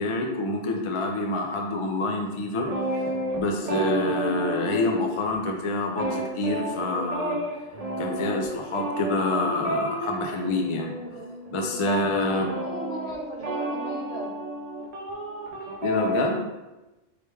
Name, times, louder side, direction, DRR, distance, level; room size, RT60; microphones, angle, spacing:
voice 1, 0.0-3.0 3.3-7.4 8.0-11.0 11.5-12.5 15.8-16.4, left 2 dB, 45° left, 2 dB, 0.4 m, -27 dB
sound 1, 2.6-5.4 5.6-16.2, right 1 dB, 45° right, 0.5 m, -31 dB
voice 2, 12.2-14.3, equal, 65° left, -3 dB, 1.3 m, -37 dB
4.8 x 3.3 x 3.3 m, 1.0 s
omnidirectional pair, 1.3 m